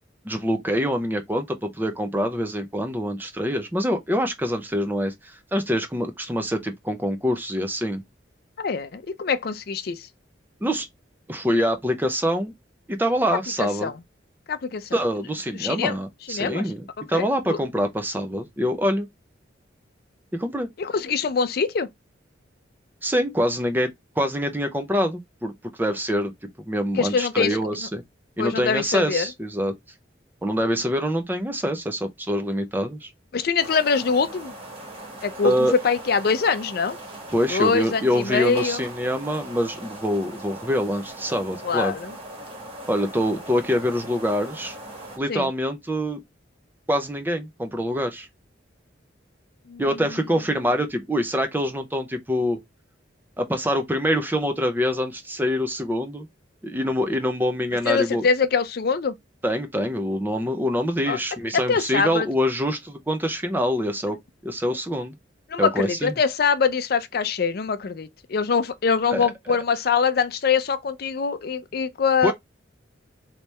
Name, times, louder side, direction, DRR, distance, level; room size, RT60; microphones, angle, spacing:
voice 1, 0.2-8.0 10.6-10.9 11.3-12.5 12.9-13.9 14.9-19.1 20.3-20.7 23.0-23.9 24.2-26.3 26.7-28.0 28.4-29.7 30.4-33.1 35.4-35.7 37.3-41.9 42.9-44.8 45.2-46.2 46.9-48.3 49.8-52.6 53.4-56.3 56.6-58.2 59.4-64.2 64.4-65.2 65.6-66.1 69.1-69.3 72.2-72.3, equal, 10° right, 0.4 m, -25 dB
voice 2, 8.6-10.1 13.6-13.9 14.5-14.9 15.6-16.0 16.3-16.7 17.1-17.6 20.8-21.9 27.0-27.6 28.4-29.3 33.3-34.5 35.2-37.0 37.5-38.8 41.6-42.1 45.3-45.5 49.7-49.8 57.8-59.1 61.1-61.2 61.5-62.3 65.5-72.3, left 5 dB, 50° left, 0.4 m, -23 dB
sound 1, 33.6-45.2, right 1 dB, 30° right, 1.5 m, -40 dB
3.3 x 2.8 x 3.1 m
head